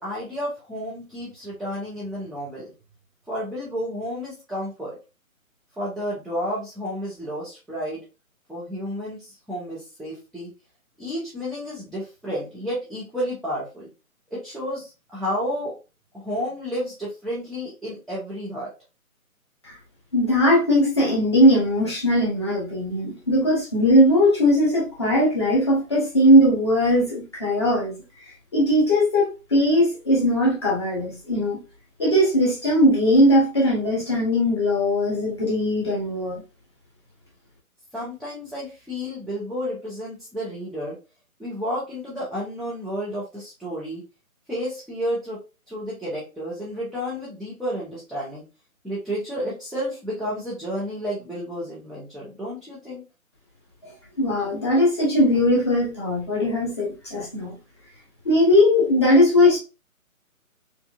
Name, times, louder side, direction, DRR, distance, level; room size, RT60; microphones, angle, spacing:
voice 1, 0.0-2.7 3.3-5.0 5.8-8.0 8.5-10.5 11.0-13.9 14.3-15.7 16.1-18.7 37.9-41.0 41.4-44.0 44.5-45.4 45.7-48.4 48.8-53.0, equal, ahead, 0.4 m, -31 dB
voice 2, 20.1-27.9 28.5-31.6 32.0-36.4 54.2-57.5 58.2-59.6, equal, 20° left, 0.9 m, -19 dB
4.5 x 2.6 x 2.3 m
hypercardioid pair, 165°, 43 cm